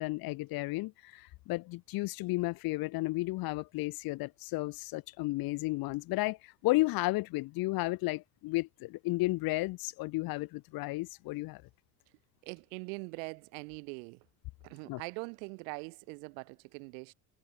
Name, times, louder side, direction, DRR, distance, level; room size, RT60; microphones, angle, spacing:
voice 1, 0.0-11.6 14.9-15.0, left 21 dB, 50° left, 1.5 m, -33 dB
voice 2, 12.4-14.2 14.6-17.1, right 36 dB, 70° right, 1.1 m, -42 dB
supercardioid pair, 120°, 44 cm